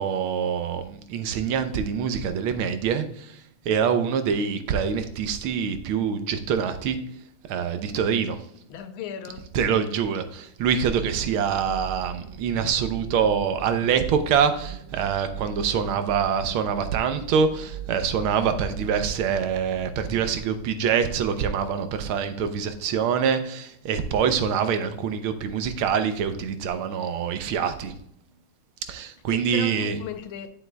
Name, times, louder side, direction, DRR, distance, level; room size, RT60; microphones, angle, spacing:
voice 1, 0.0-3.4 3.6-7.0 7.5-8.4 9.5-27.9 28.9-30.0, right 7 dB, 85° right, 9 dB, 1.6 m, -25 dB
voice 2, 8.7-9.5 29.3-30.5, left 9 dB, 80° left, 9 dB, 1.5 m, -36 dB
sound 1, 10.6-20.3, right 9 dB, 55° right, 0.8 m, -39 dB
9.4 x 7.7 x 2.3 m, 0.71 s
omnidirectional pair, 2.3 m